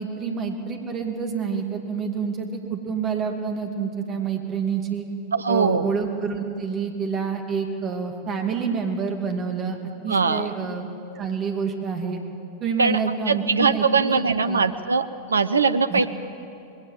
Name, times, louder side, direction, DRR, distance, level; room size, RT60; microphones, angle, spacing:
voice 1, 0.0-5.1 5.5-9.8 10.0-10.9 11.1-12.2 12.6-14.7 15.9-16.1, right 6 dB, 30° right, 4 dB, 2.4 m, -28 dB
voice 2, 5.3-5.9 10.1-10.5 12.8-13.0 13.3-16.1, right 5 dB, 75° right, 13 dB, 0.6 m, -21 dB
20.5 x 18.0 x 7.3 m, 2.7 s
figure-of-eight pair, 90°, 0 cm